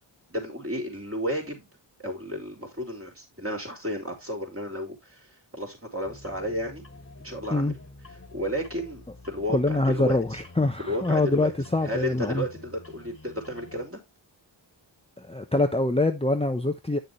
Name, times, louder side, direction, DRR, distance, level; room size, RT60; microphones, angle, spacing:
voice 1, 0.3-1.7 2.0-6.8 7.2-7.7 8.3-10.4 10.8-11.5 11.8-14.0, equal, 30° right, 4.2 m, -33 dB
sound 1, 6.0-13.9, left 2 dB, 30° left, 1.8 m, -48 dB
voice 2, 9.5-12.4 15.3-17.0, left 2 dB, 15° left, 0.9 m, -24 dB
9.2 x 6.7 x 3.1 m
wide cardioid pair, 45°, 46 cm